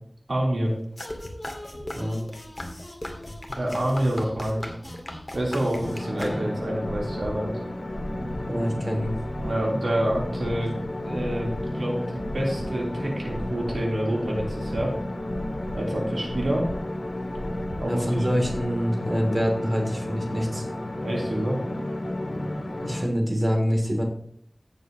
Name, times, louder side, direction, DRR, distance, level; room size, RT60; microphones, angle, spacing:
voice 1, 0.3-0.7 3.5-4.6 5.3-7.6 9.4-10.8 11.0-15.0 15.7-16.7 17.8-18.3 21.0-21.6, right 1 dB, 90° right, -3 dB, 3.5 m, -27 dB
sound 1, 1.0-6.8, left 1 dB, 30° left, 2.0 m, -37 dB
sound 2, 5.8-23.0, left 1 dB, 65° left, 2.4 m, -32 dB
sound 3, 6.7-18.6, equal, 55° right, 3.6 m, -39 dB
voice 2, 8.4-9.2 17.8-20.7 22.8-24.0, equal, 30° right, 1 dB, 3.0 m, -25 dB
16.5 x 6.9 x 3.0 m, 0.65 s
wide cardioid pair, 55°, 0 cm